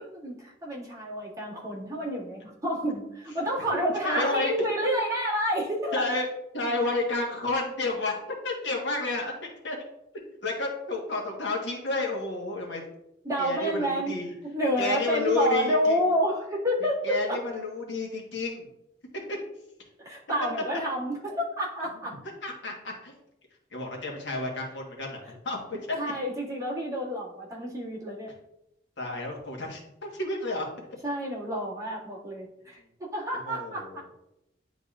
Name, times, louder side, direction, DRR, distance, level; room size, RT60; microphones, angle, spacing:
voice 1, 0.0-6.1 13.2-14.2 14.4-17.4 20.0-22.2 26.0-28.3 31.0-34.1, equal, 15° right, -7 dB, 1.9 m, -29 dB
voice 2, 4.0-4.7 5.9-6.3 6.5-9.8 10.1-12.8 13.4-14.3 14.8-16.0 17.0-18.7 19.3-19.4 22.4-23.1 23.7-25.2 25.4-26.0 29.0-30.7 33.5-34.0, left 2 dB, 75° left, -1 dB, 1.4 m, -30 dB
10.0 x 3.9 x 2.4 m, 0.85 s
head